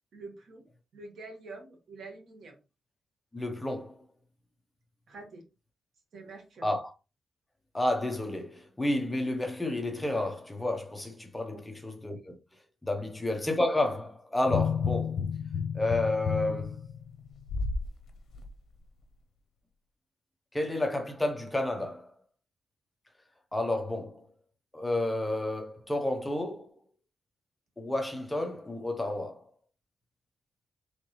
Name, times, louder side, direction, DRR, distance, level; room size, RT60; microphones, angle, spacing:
voice 1, 0.1-0.7 0.9-2.6 5.1-5.4 6.1-6.7 11.5-11.6 13.0-13.1, right 3 dB, 65° right, 1.6 m, -46 dB
voice 2, 3.3-3.9 6.6-6.9 7.7-12.4 12.8-15.2 15.7-16.8 20.5-22.1 23.5-24.2 24.7-26.7 27.8-29.4, left 1 dB, 10° left, 0.8 m, -31 dB
sound 1, 14.4-17.9 18.3-18.5, left 6 dB, 70° left, 0.7 m, -31 dB
4.5 x 3.6 x 3.2 m
wide cardioid pair, 145°, 0 cm